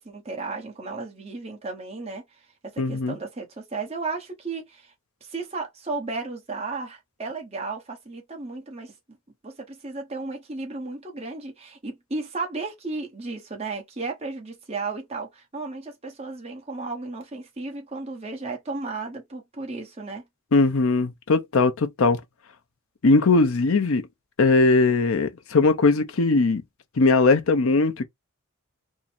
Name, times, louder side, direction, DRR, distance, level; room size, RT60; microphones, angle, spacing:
voice 1, 0.0-2.5 2.7-4.9 5.2-8.9 9.4-20.2, right 3 dB, 30° right, 0.9 m, -34 dB
voice 2, 2.8-3.2 20.5-22.2 23.0-24.0 24.4-26.6 27.0-28.0, left 3 dB, 70° left, 0.7 m, -20 dB
3.7 x 2.0 x 4.3 m
head